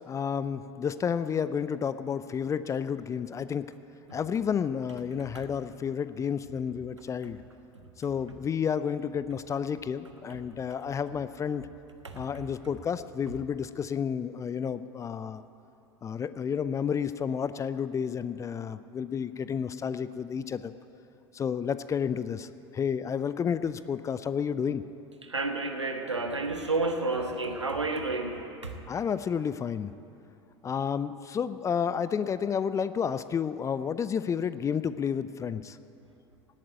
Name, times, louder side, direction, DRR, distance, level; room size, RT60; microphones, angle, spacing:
voice 1, 0.1-3.7 4.1-7.4 8.0-11.7 12.1-15.4 16.0-20.7 21.3-24.8 28.9-29.9 30.6-35.8, left 7 dB, 20° left, 14 dB, 0.5 m, -31 dB
voice 2, 25.3-28.7, right 3 dB, 85° right, 5 dB, 1.4 m, -30 dB
17.5 x 8.6 x 9.2 m, 2.8 s
figure-of-eight pair, 80°, 15 cm